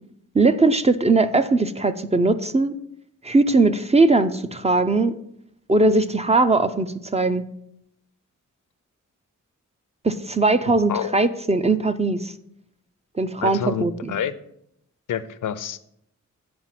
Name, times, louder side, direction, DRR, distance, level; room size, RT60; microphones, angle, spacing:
voice 1, 0.3-2.7 3.2-5.1 5.7-7.4 10.0-12.3 13.2-14.1, right 3 dB, 20° right, 10 dB, 0.4 m, -20 dB
voice 2, 10.7-11.1 13.4-14.3 15.1-15.8, left 8 dB, 80° left, 14 dB, 0.5 m, -28 dB
8.6 x 4.8 x 5.8 m, 0.76 s
wide cardioid pair, 135°, 31 cm